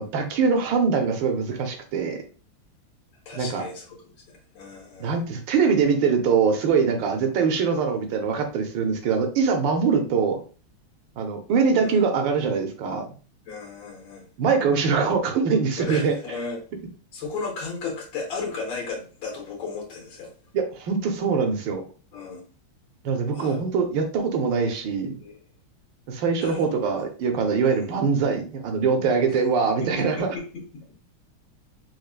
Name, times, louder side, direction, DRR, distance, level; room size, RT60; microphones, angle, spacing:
voice 1, 0.0-2.2 3.3-3.6 5.0-10.4 11.2-13.1 14.4-16.4 20.5-21.8 23.0-25.2 26.1-30.4, right 5 dB, 70° right, 4 dB, 1.4 m, -23 dB
voice 2, 3.3-3.8 4.5-5.1 11.8-12.0 13.5-14.2 15.8-16.6 17.1-20.3 22.1-22.4 23.3-23.6 24.7-24.8 25.2-25.4 26.4-26.7 27.8-27.9 29.8-30.9, left 4 dB, 75° left, -2 dB, 1.7 m, -35 dB
4.5 x 2.4 x 2.4 m, 0.38 s
omnidirectional pair, 2.2 m